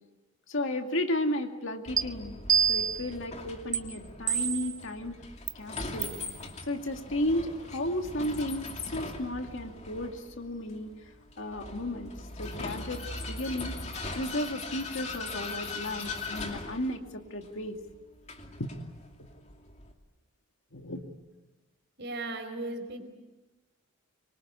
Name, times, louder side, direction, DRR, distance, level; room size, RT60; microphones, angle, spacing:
voice 1, 0.5-2.4 2.7-5.2 5.5-6.1 6.6-10.9 11.4-12.1 12.4-13.8 14.1-17.8 18.6-18.7 20.7-21.1, left 1 dB, 60° left, 4 dB, 2.3 m, -34 dB
Vehicle, 1.9-19.9, left 3 dB, 30° left, 2.6 m, -40 dB
sound 1, 2.0-2.1 2.5-3.1 3.7-3.8 4.3-4.8 5.5-5.6 6.0-6.2, right 8 dB, 20° right, 1.4 m, -26 dB
voice 2, 22.0-23.0, right 2 dB, 50° right, 6 dB, 4.8 m, -36 dB
25.0 x 24.5 x 8.5 m, 1.1 s
head